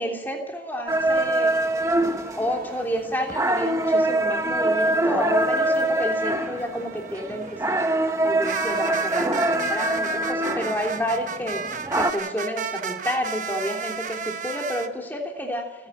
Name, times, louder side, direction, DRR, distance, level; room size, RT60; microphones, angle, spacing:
voice 1, 0.0-1.5 2.3-7.8 8.2-11.6 11.9-15.7, equal, 10° left, 1 dB, 3.1 m, -30 dB
sound 1, 0.9-12.1, right 1 dB, 15° right, 0.9 m, -24 dB
sound 2, 1.0-3.9 4.4-14.9, right 6 dB, 45° right, 1.0 m, -35 dB
29.0 x 10.5 x 8.7 m, 1.1 s
head